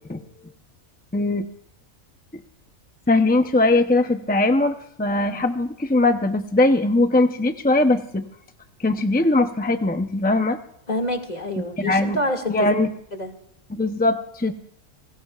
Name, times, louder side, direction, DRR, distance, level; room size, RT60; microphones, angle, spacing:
voice 1, 1.1-1.5 3.1-8.2 8.8-10.6 11.8-12.2 12.5-12.9 13.7-14.5, left 2 dB, 15° left, 7 dB, 0.4 m, -20 dB
voice 2, 10.9-12.7 13.1-13.3, left 1 dB, 30° left, 3 dB, 2.2 m, -27 dB
27.0 x 20.5 x 2.4 m, 0.71 s
omnidirectional pair, 1.4 m